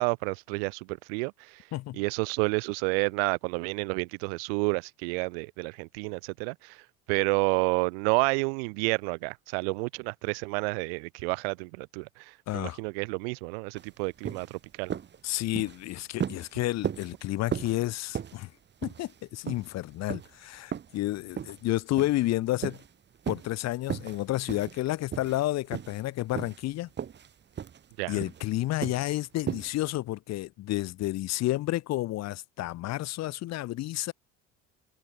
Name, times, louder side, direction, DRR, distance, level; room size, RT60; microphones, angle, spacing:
voice 1, 0.0-1.6 1.9-6.8 7.1-14.9 28.0-28.2, right 32 dB, 80° right, 6.0 m, -30 dB
voice 2, 12.5-12.8 15.2-18.5 18.8-22.8 23.3-26.9 28.1-34.1, left 16 dB, 60° left, 5.2 m, -30 dB
sound 1, 13.8-13.9 14.2-14.5 14.9-15.2 15.5-15.8 16.2-16.5 16.8-17.1 17.5-17.8 18.1-18.4 18.8-19.2 19.5-19.7 20.1-20.3 20.7-21.0 21.4-21.6 22.0-22.3 22.6-22.9 23.2-23.5 23.9-24.2 24.5-24.8 25.1-25.4 25.7-26.0 26.3-26.7 27.0-27.3 27.6-27.8 28.2-28.5 28.8-29.1 29.5-29.7, right 8 dB, 35° right, 2.3 m, -35 dB
open air
supercardioid pair, 85°, 29 cm